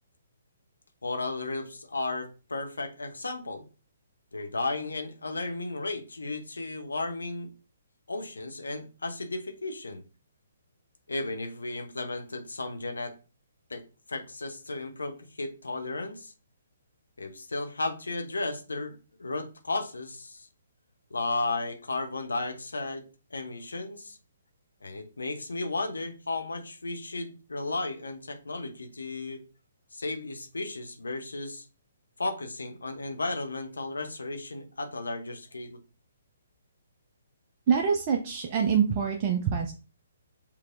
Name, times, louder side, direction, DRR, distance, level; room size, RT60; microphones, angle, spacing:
voice 1, 1.0-3.6 4.3-7.5 8.1-10.0 11.1-13.1 13.7-13.8 14.1-16.3 17.2-20.5 21.1-23.0 23.3-24.2 24.8-29.4 29.9-31.7 32.2-35.8, left 2 dB, 80° left, 0.9 m, -34 dB
voice 2, 37.7-39.7, right 7 dB, 35° right, 0.7 m, -25 dB
5.8 x 3.2 x 2.5 m
figure-of-eight pair, 130°, 0 cm